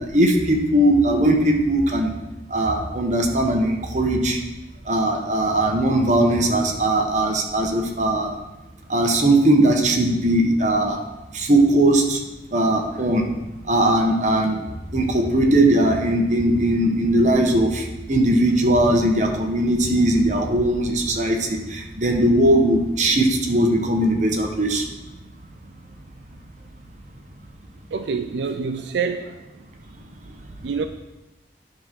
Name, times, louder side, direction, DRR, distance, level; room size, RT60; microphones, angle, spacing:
voice 1, 0.1-2.1 2.5-4.4 4.9-8.3 8.9-11.0 11.3-12.2 12.5-13.3 13.7-14.6 14.9-24.8, right 1 dB, 45° right, 2 dB, 1.1 m, -19 dB
voice 2, 27.9-29.5 30.4-30.9, right 5 dB, 80° right, 8 dB, 0.4 m, -27 dB
10.0 x 3.8 x 6.0 m, 1.0 s
head